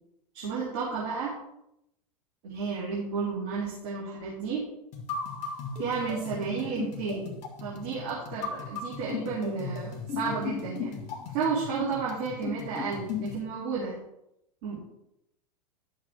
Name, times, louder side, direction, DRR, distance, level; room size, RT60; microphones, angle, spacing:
voice 1, 0.3-1.4 2.4-4.7 5.8-7.3 7.6-11.0 11.3-14.0 14.6-14.8, right 5 dB, 45° right, -5 dB, 2.6 m, -32 dB
sound 1, 4.9-13.4, left 5 dB, 35° left, 1.5 m, -37 dB
11.5 x 6.6 x 3.5 m, 0.81 s
figure-of-eight pair, 90°, 20 cm